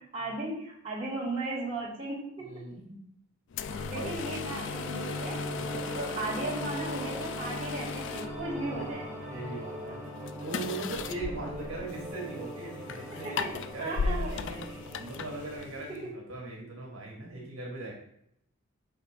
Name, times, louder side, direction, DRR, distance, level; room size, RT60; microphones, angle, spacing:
voice 1, 0.1-2.6 3.9-5.4 5.9-9.1 13.2-14.4 15.9-16.1, right 2 dB, 25° right, -5 dB, 1.9 m, -36 dB
voice 2, 2.4-3.0 3.9-4.1 4.6-4.7 5.6-5.9 8.5-10.1 10.4-14.6 14.9-17.9, right 2 dB, 65° right, -1 dB, 1.5 m, -40 dB
sound 1, 3.5-16.0, left 5 dB, 55° left, 0.3 m, -38 dB
sound 2, 3.7-15.7, equal, 5° right, 1.6 m, -40 dB
5.8 x 3.4 x 5.0 m, 0.73 s
head